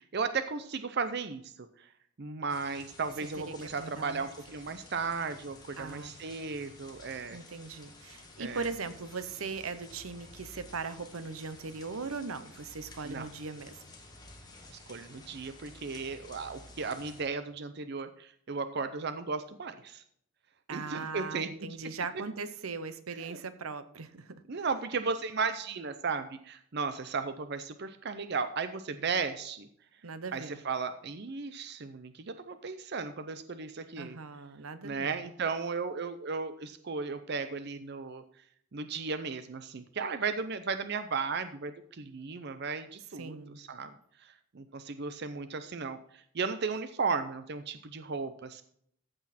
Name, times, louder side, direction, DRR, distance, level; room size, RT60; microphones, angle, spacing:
voice 1, 0.0-1.9 2.2-7.4 8.4-8.7 13.0-13.3 14.9-20.0 20.7-21.5 23.2-23.4 24.5-29.7 30.3-34.2 34.8-38.2 38.7-43.9 44.2-48.6, right 4 dB, 50° right, 10 dB, 0.6 m, -35 dB
sound 1, 2.5-17.2, left 2 dB, 20° left, 1.8 m, -52 dB
voice 2, 3.4-4.3 5.8-6.3 7.3-13.8 20.7-24.7 30.0-30.6 34.0-35.2 43.2-43.6, right 4 dB, 85° right, 12 dB, 0.9 m, -39 dB
14.5 x 6.3 x 4.2 m, 0.67 s
head